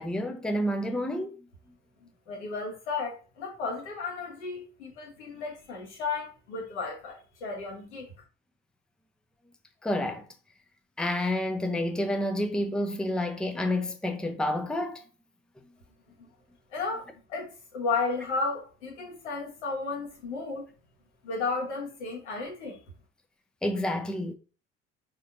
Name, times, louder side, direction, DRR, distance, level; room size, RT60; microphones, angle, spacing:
voice 1, 0.0-1.4 9.8-10.3 11.0-15.0 23.6-24.3, left 1 dB, ahead, 0.7 m, -29 dB
voice 2, 2.3-8.1 16.2-16.3 16.7-20.6 21.2-22.8, left 4 dB, 75° left, 1.3 m, -33 dB
5.0 x 4.1 x 2.6 m
figure-of-eight pair, 50°, 35 cm